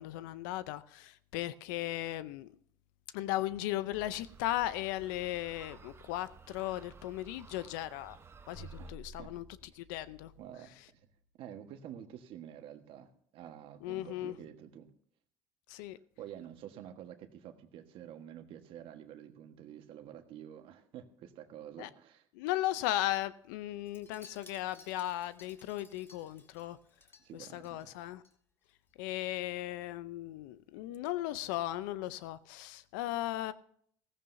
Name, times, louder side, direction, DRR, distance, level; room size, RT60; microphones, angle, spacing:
voice 1, 0.0-2.5 3.1-8.2 8.5-9.4 9.8-10.3 13.8-14.4 15.7-16.0 21.8-21.9 22.3-26.8 27.3-28.2 29.0-33.5, left 14 dB, 90° left, 0.6 m, -36 dB
sound 1, 3.9-8.9, right 5 dB, 25° right, 1.0 m, -55 dB
sound 2, 8.5-11.0, equal, 45° left, 3.8 m, -51 dB
voice 2, 8.8-9.3 9.7-9.9 10.4-11.1 11.4-14.9 16.2-22.3 27.2-27.9, right 10 dB, 65° right, 1.4 m, -49 dB
Wind chime, 23.9-28.3 28.6-28.9 29.2-29.3, left 4 dB, 25° left, 1.7 m, -60 dB
15.5 x 15.0 x 2.7 m
supercardioid pair, 100°, 10 cm